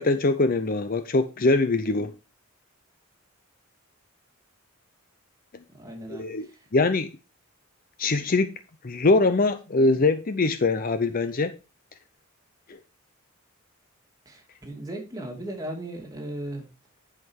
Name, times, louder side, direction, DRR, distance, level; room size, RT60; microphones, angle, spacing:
voice 1, 0.0-2.1 6.1-6.5 6.7-7.1 8.0-8.5 8.8-11.5, left 3 dB, 40° left, 0.6 m, -22 dB
voice 2, 5.7-6.6 14.3-16.7, right 1 dB, 15° right, 2.5 m, -37 dB
10.5 x 5.9 x 4.6 m
head